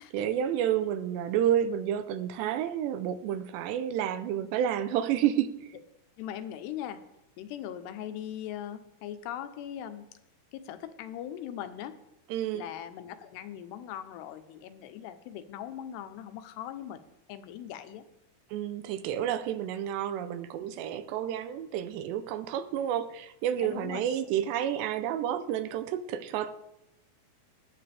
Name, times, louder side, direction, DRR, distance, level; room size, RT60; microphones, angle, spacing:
voice 1, 0.1-5.7 12.3-12.6 18.5-26.5, right 10 dB, 85° right, 11 dB, 2.9 m, -30 dB
voice 2, 6.2-7.0 7.4-10.1 10.5-12.0 12.5-17.0 17.3-18.1 23.6-24.1, left 10 dB, 85° left, 10 dB, 2.9 m, -40 dB
20.0 x 9.3 x 3.4 m, 0.85 s
omnidirectional pair, 4.8 m